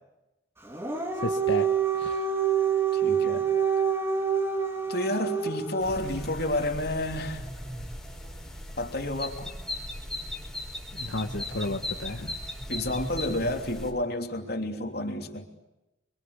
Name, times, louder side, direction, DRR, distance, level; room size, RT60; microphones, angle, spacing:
Dog, 0.6-5.8, right 7 dB, 15° right, 2.8 m, -26 dB
voice 1, 1.2-1.7 1.9-2.3 10.9-12.4, left 2 dB, 80° left, 3 dB, 1.6 m, -33 dB
voice 2, 2.9-3.5 4.9-7.5 8.8-9.5 12.7-15.5, left 1 dB, 55° left, 4 dB, 3.3 m, -30 dB
sound 1, 5.8-13.9, left 1 dB, 5° left, 4.7 m, -37 dB
28.5 x 24.0 x 8.4 m, 0.98 s
head